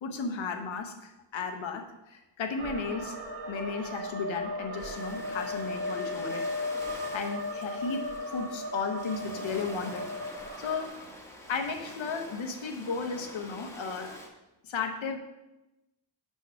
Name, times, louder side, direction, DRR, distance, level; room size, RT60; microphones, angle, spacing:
voice 1, 0.0-3.2 3.5-10.9 11.5-14.2 14.6-15.2, left 5 dB, 90° left, 5 dB, 0.9 m, -35 dB
sound 1, 2.6-10.9, left 1 dB, 55° right, 1.3 m, -36 dB
Ocean, 4.8-14.3, left 1 dB, 5° left, 1.0 m, -46 dB
6.0 x 4.5 x 5.6 m, 0.99 s
wide cardioid pair, 95°, 45 cm